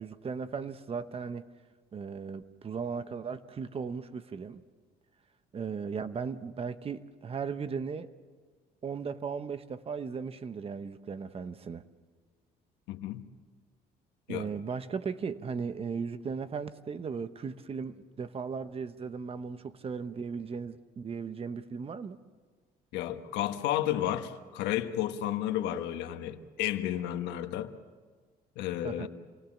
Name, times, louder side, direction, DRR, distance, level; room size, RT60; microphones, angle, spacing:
voice 1, 0.0-1.4 1.9-4.6 5.5-8.1 8.8-11.8 14.3-22.2 28.8-29.1, right 5 dB, 35° right, 1.0 m, -37 dB
voice 2, 12.9-13.3 14.3-14.5 22.9-27.7 28.6-29.1, left 12 dB, 90° left, 1.4 m, -32 dB
27.5 x 19.5 x 7.3 m
cardioid pair, 110°, 17 cm